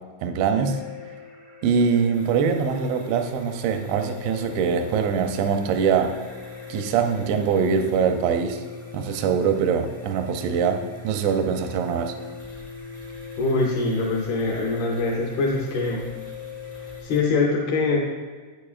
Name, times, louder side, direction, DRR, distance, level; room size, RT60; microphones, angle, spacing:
voice 1, 0.2-0.8 1.6-6.1 6.7-8.6 8.9-12.1, right 6 dB, 85° right, 6 dB, 2.6 m, -23 dB
sound 1, 0.5-17.0, left 8 dB, 45° right, 0.6 m, -42 dB
sound 2, 2.1-17.2, equal, 55° left, 0.4 m, -45 dB
voice 2, 13.4-16.0 16.7-18.0, left 3 dB, 75° left, -3 dB, 2.3 m, -24 dB
8.8 x 8.5 x 2.5 m, 1.5 s
omnidirectional pair, 5.5 m